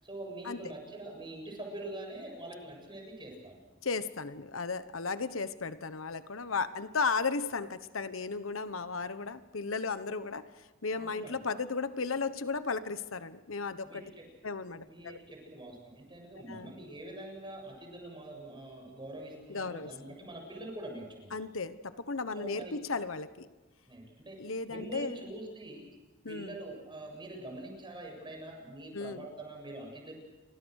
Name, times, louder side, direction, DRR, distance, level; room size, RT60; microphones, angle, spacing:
voice 1, 0.0-3.6 11.0-11.4 13.8-14.2 14.8-21.4 22.4-22.8 23.9-24.4 24.7-25.9 26.3-30.1, right 1 dB, 25° right, 1 dB, 7.6 m, -44 dB
voice 2, 3.8-14.0 14.4-15.2 16.5-16.7 19.5-19.9 21.3-23.5 24.4-25.2 26.2-26.6 28.9-29.3, left 4 dB, 90° left, 12 dB, 1.1 m, -35 dB
29.0 x 24.5 x 6.5 m, 1.2 s
head